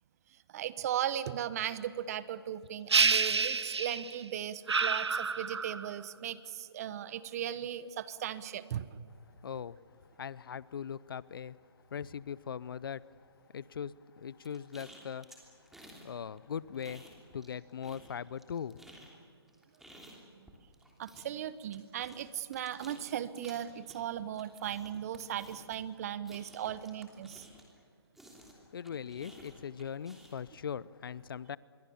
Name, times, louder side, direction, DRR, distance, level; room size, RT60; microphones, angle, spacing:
voice 1, 0.5-8.9 20.3-20.5 21.0-27.5, right 10 dB, 35° right, 16 dB, 1.0 m, -37 dB
sound 1, 2.9-4.2 4.7-5.9, right 4 dB, 85° right, 1.0 m, -28 dB
voice 2, 9.4-11.6 11.9-15.4 16.0-18.8 28.7-31.6, left 7 dB, 55° left, 20 dB, 0.7 m, -40 dB
sound 2, 14.4-16.1 16.4-17.5 17.8-27.8 28.1-30.5, equal, ahead, 3.1 m, -55 dB
26.5 x 23.0 x 7.1 m, 2.3 s
hypercardioid pair, 145°, 14 cm